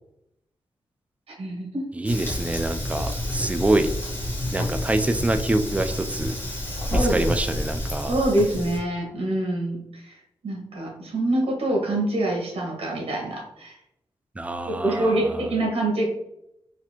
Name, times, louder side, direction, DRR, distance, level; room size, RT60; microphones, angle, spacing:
voice 1, 1.4-1.8 6.8-7.2 8.1-10.2 10.4-13.8 14.7-16.1, right 1 dB, 80° right, -2 dB, 1.5 m, -25 dB
voice 2, 1.9-3.9 4.5-6.3 6.9-8.1 14.4-15.4, right 2 dB, 15° right, 8 dB, 0.3 m, -25 dB
Fire, 2.0-8.8, left 1 dB, 20° left, 1.2 m, -29 dB
4.1 x 2.6 x 2.9 m, 0.79 s
wide cardioid pair, 105°, 10 cm